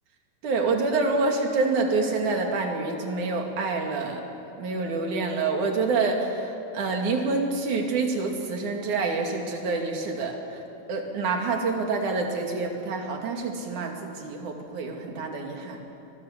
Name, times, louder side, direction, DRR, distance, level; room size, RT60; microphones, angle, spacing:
voice 1, 0.4-4.2 4.6-10.6 10.9-15.8, right 3 dB, 60° right, 2 dB, 3.8 m, -27 dB
25.0 x 23.0 x 7.4 m, 2.8 s
omnidirectional pair, 4.1 m